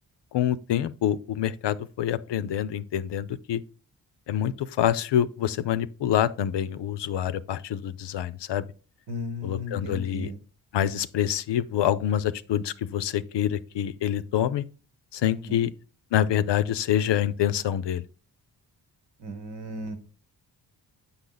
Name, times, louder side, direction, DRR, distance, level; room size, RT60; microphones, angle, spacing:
voice 1, 0.3-3.6 4.3-8.6 9.4-10.3 10.7-14.6 15.1-15.7 16.1-18.0, left 10 dB, 70° left, 0.6 m, -26 dB
voice 2, 9.1-10.4 15.2-15.6 19.2-20.0, left 1 dB, 80° right, 1.2 m, -35 dB
7.0 x 5.7 x 3.9 m
supercardioid pair, 45°, 44 cm